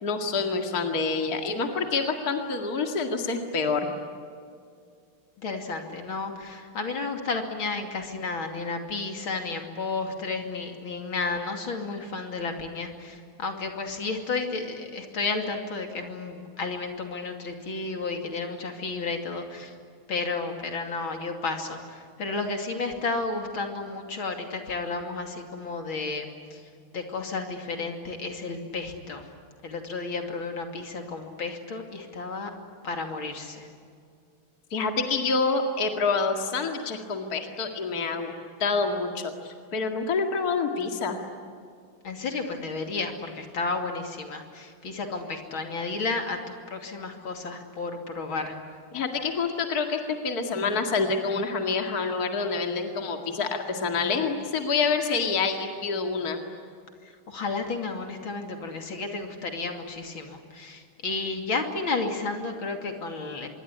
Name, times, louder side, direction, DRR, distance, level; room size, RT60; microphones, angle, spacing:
voice 1, 0.0-3.9 34.7-38.3 38.6-41.2 48.9-56.4, left 4 dB, 45° left, 4 dB, 2.5 m, -27 dB
voice 2, 5.4-19.8 20.1-26.6 26.9-29.3 29.6-32.5 32.8-33.7 42.0-48.6 57.3-63.5, left 3 dB, 70° left, 4 dB, 3.5 m, -32 dB
26.0 x 22.5 x 9.9 m, 2.3 s
omnidirectional pair, 2.3 m